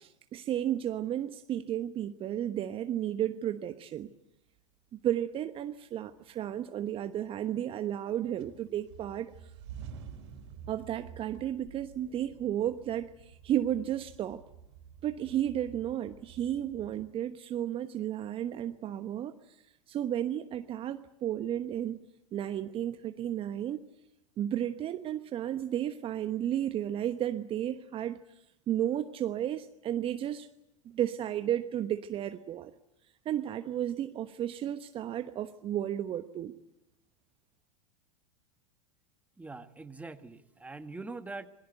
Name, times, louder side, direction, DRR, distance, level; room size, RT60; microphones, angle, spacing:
voice 1, 0.0-4.1 4.9-9.3 10.7-14.4 15.0-19.6 19.9-22.0 22.3-23.8 24.4-28.2 28.7-30.5 30.8-32.7 33.2-36.5, right 11 dB, 35° right, 1.1 m, -33 dB
sound 1, 5.8-6.5 6.9-8.1 8.4-17.1, right 7 dB, 65° right, 4.2 m, -50 dB
voice 2, 39.4-41.5, right 3 dB, 10° right, 1.8 m, -43 dB
27.0 x 22.0 x 8.1 m
figure-of-eight pair, 90°, 16 cm